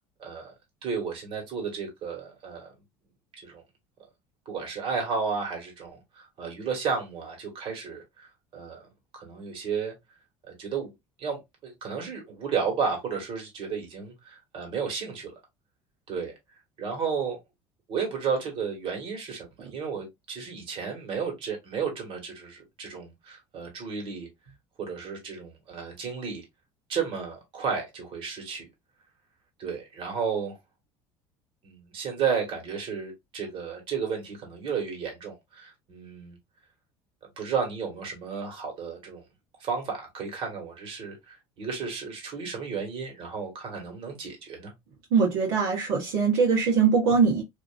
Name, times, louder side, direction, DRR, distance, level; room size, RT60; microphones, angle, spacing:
voice 1, 0.2-0.5 0.8-2.7 3.4-3.6 4.5-8.9 9.1-10.0 10.5-10.9 11.2-15.3 16.1-16.3 16.8-17.4 17.9-24.3 24.8-26.4 26.9-28.7 29.6-30.6 31.6-36.4 37.4-39.2 39.6-44.7, right 6 dB, 50° right, 1.7 m, -33 dB
voice 2, 45.1-47.4, right 5 dB, 80° right, 1.2 m, -22 dB
2.8 x 2.6 x 2.4 m
supercardioid pair, 110°, 11 cm